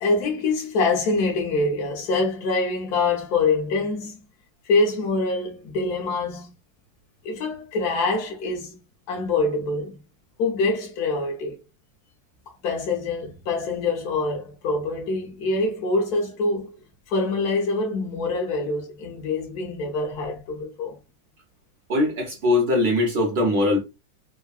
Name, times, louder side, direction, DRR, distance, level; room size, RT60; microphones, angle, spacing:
voice 1, 0.0-4.2 4.6-6.5 7.2-8.8 9.1-10.0 10.4-11.5 12.6-16.8 17.1-20.9, left 3 dB, 60° left, 1.4 m, -25 dB
voice 2, 21.9-23.8, left 2 dB, 45° right, 0.8 m, -21 dB
3.6 x 2.2 x 2.3 m
omnidirectional pair, 2.0 m